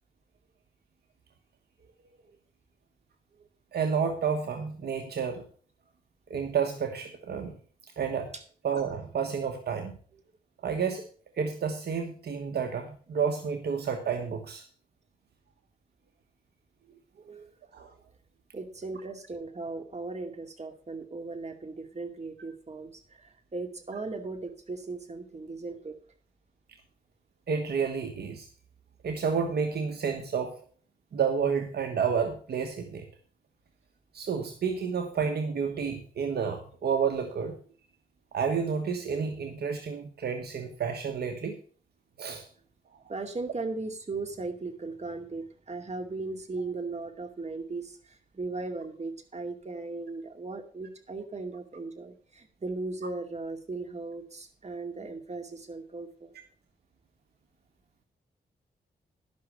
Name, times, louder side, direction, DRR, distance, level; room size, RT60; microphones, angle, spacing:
voice 1, 3.7-5.4 6.3-7.6 8.0-8.3 8.6-9.9 10.6-11.0 11.4-14.6 17.3-17.4 17.7-17.9 27.5-28.5 29.0-30.6 31.1-33.1 34.1-37.6 38.3-41.6 42.2-42.4, right 6 dB, 75° right, 5 dB, 1.3 m, -30 dB
voice 2, 18.5-25.9 43.1-56.3, right 3 dB, 40° right, 5 dB, 2.4 m, -37 dB
11.5 x 6.3 x 6.3 m, 0.43 s
cardioid pair, 55°, 17 cm